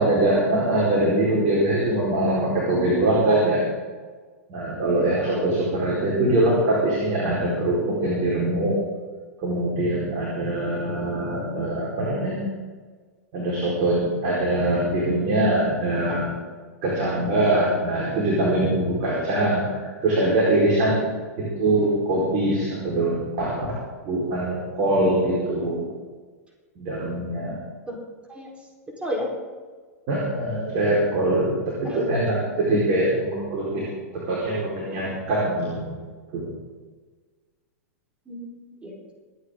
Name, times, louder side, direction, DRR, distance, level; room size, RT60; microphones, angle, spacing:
voice 1, 0.0-3.6 4.5-8.8 9.4-12.4 13.3-16.3 16.8-23.8 24.0-25.9 26.8-27.6 30.1-35.9 36.3-36.5, right 1 dB, 45° right, -5 dB, 4.6 m, -23 dB
voice 2, 5.9-6.3 16.1-16.2 17.0-17.3 27.9-28.0 28.3-28.5 29.0-29.3 31.8-32.1 38.3-39.1, equal, 15° right, -1 dB, 4.3 m, -33 dB
24.5 x 9.6 x 3.9 m, 1.5 s
figure-of-eight pair, 95°, 9 cm